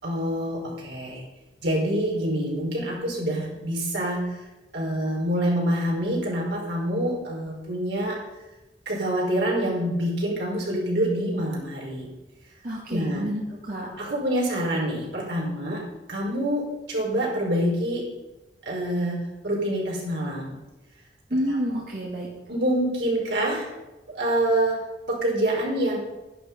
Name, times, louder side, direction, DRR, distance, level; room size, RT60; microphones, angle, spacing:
voice 1, 0.0-1.2 1.6-4.4 4.7-8.2 8.8-12.1 12.9-13.2 14.0-15.8 16.1-18.1 18.6-20.6 21.5-21.6 22.5-23.7 24.1-24.8 25.1-26.0, right 1 dB, 85° right, -3 dB, 4.9 m, -26 dB
voice 2, 12.6-13.9 21.3-22.3, equal, 55° right, -4 dB, 2.2 m, -29 dB
11.5 x 11.0 x 5.5 m, 1.0 s
head